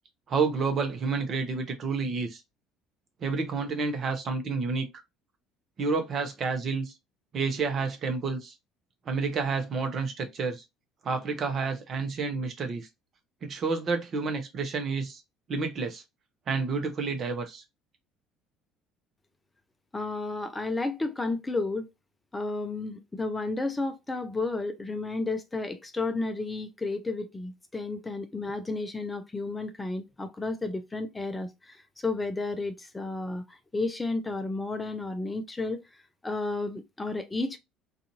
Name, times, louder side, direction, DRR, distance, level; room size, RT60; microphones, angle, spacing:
voice 1, 0.3-2.4 3.2-4.9 5.8-6.9 7.3-8.5 9.1-10.6 11.0-12.9 13.4-15.2 15.5-16.0 16.5-17.6, right 4 dB, 45° right, 0.7 m, -29 dB
voice 2, 19.9-21.9 22.3-35.8 36.2-37.6, left 3 dB, 15° left, 0.5 m, -32 dB
2.5 x 2.4 x 2.8 m
hypercardioid pair, 60°, 0 cm